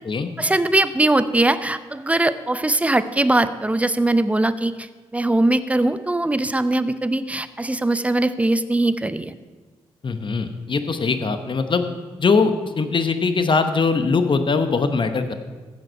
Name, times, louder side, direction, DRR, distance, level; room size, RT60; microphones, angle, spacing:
voice 1, 0.4-4.9 5.1-9.3, right 2 dB, 10° right, 12 dB, 0.6 m, -21 dB
voice 2, 10.0-11.9 12.2-15.3, left 4 dB, 40° left, 8 dB, 1.0 m, -21 dB
15.0 x 5.2 x 4.6 m, 1.3 s
hypercardioid pair, 40°, 13 cm